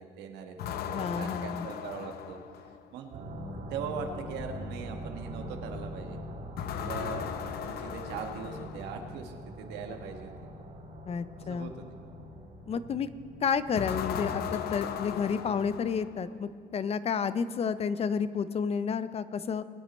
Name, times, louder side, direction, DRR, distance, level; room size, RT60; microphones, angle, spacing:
voice 1, 0.0-2.4 2.9-3.1 3.7-6.2 6.8-7.3 7.7-10.3 11.4-12.0, right 6 dB, 85° right, 4 dB, 1.5 m, -40 dB
sound 1, 0.6-2.9 6.6-9.1 13.8-16.4, left 8 dB, 65° left, 0.8 m, -37 dB
voice 2, 0.9-1.7 11.1-11.7 12.7-13.1 13.4-19.6, left 6 dB, 35° left, 14 dB, 0.6 m, -31 dB
sound 2, 3.1-15.8, equal, 70° right, 3.3 m, -44 dB
sound 3, 4.4-13.3, right 2 dB, 10° left, 2.9 m, -49 dB
22.0 x 9.3 x 4.3 m, 2.2 s
cardioid pair, 110°, 17 cm